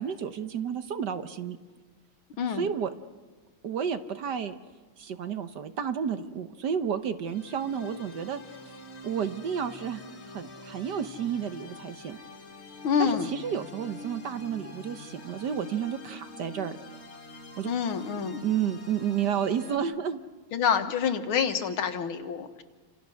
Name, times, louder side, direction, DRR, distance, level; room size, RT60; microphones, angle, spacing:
voice 1, 0.0-1.6 2.5-2.9 3.6-4.6 5.0-8.4 9.0-12.2 13.0-16.8 17.6-17.7 18.4-20.2, right 8 dB, 60° right, 10 dB, 1.4 m, -31 dB
voice 2, 2.4-2.7 12.8-13.3 17.6-18.4 20.5-22.6, left 7 dB, 80° left, 8 dB, 2.1 m, -27 dB
sound 1, 7.2-19.8, left 1 dB, 30° left, 2.3 m, -46 dB
28.5 x 27.0 x 6.4 m, 1.4 s
omnidirectional pair, 2.3 m